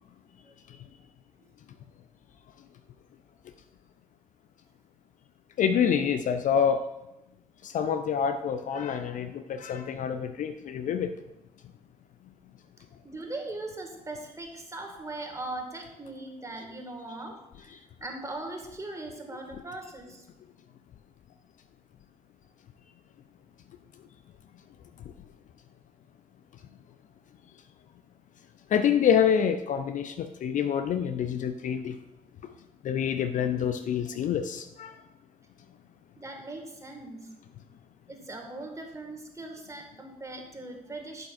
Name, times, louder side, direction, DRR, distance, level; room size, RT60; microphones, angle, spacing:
voice 1, 5.6-6.8 7.6-11.1 28.7-32.0 32.8-35.0, left 8 dB, 45° left, 9 dB, 0.5 m, -27 dB
voice 2, 13.0-20.2 36.2-37.3 38.1-41.3, right 2 dB, 15° right, 3 dB, 1.8 m, -40 dB
11.5 x 8.0 x 2.5 m, 0.93 s
figure-of-eight pair, 45°, 18 cm